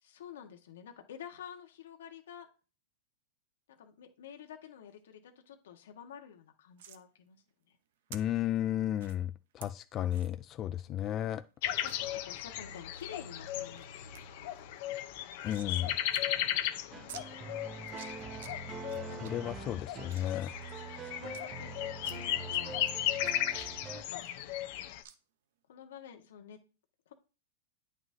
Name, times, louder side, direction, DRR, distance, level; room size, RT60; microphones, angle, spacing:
voice 1, 0.0-2.5 3.8-7.8 10.9-11.4 11.8-14.6 17.8-18.1 19.1-19.7 20.7-21.7 22.1-22.8 23.9-24.3 25.7-26.6 27.1-27.2, left 8 dB, 75° left, 4 dB, 1.6 m, -50 dB
sound 1, 6.8-7.0 8.1-8.2 9.0-9.2 9.6-9.7 10.1-10.3 10.7-10.8 11.1-11.2 11.9-12.0 12.5-13.0 13.5-13.8 14.1-14.2 14.5-15.9 16.1-16.2 16.5-16.6 17.1-17.2 17.8-18.5 18.9-19.3 19.8-21.4 22.0-22.6 22.9-24.7 25.0-25.2, right 10 dB, 70° right, 0.9 m, -51 dB
voice 2, 8.1-11.4 15.4-16.0 19.2-20.5, left 11 dB, 25° left, 11 dB, 0.3 m, -33 dB
sound 2, 11.6-25.0, left 12 dB, 50° left, 0.9 m, -36 dB
sound 3, 16.9-24.0, right 4 dB, 20° right, 0.8 m, -45 dB
9.2 x 5.8 x 2.8 m, 0.35 s
supercardioid pair, 150°, 0 cm